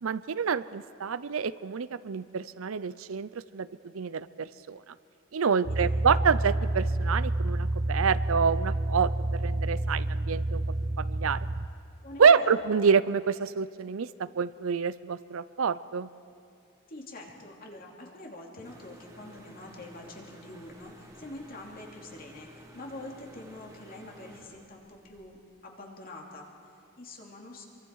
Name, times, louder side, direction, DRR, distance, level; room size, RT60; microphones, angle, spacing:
voice 1, 0.0-3.7 3.9-4.8 5.3-10.6 11.0-11.4 12.2-16.1, right 6 dB, 80° right, 15 dB, 0.5 m, -27 dB
voice 2, 5.5-5.9 12.0-12.6 16.9-27.6, left 2 dB, 45° left, -1 dB, 2.7 m, -45 dB
sound 1, 5.6-11.7, right 2 dB, 50° right, 0.8 m, -29 dB
sound 2, 18.6-25.2, equal, 15° right, 1.7 m, -52 dB
26.5 x 23.5 x 4.7 m, 2.4 s
head